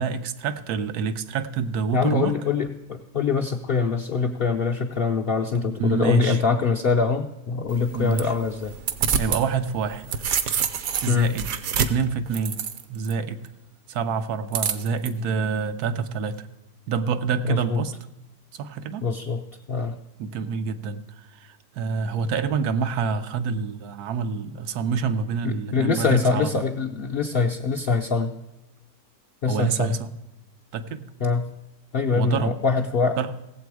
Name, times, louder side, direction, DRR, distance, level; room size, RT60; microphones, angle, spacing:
voice 1, 0.0-2.4 5.7-6.4 7.9-8.3 9.2-10.2 11.0-11.5 11.8-12.6 12.9-13.4 13.9-16.5 16.9-17.9 18.5-19.1 20.2-21.0 21.3-26.7 29.5-30.1 30.7-31.0 32.1-32.6 33.2-33.3, right 5 dB, 85° right, 10 dB, 1.2 m, -27 dB
voice 2, 1.9-8.8 11.1-11.4 17.4-17.8 19.0-19.4 19.7-20.0 25.4-28.3 29.4-30.0 31.2-31.4 31.9-33.2, left 4 dB, 65° left, 2 dB, 0.5 m, -24 dB
sound 1, 7.7-9.4 9.8-13.1 14.5-15.1, right 7 dB, 70° right, 1.1 m, -27 dB
16.5 x 7.6 x 4.7 m, 0.97 s
omnidirectional pair, 1.6 m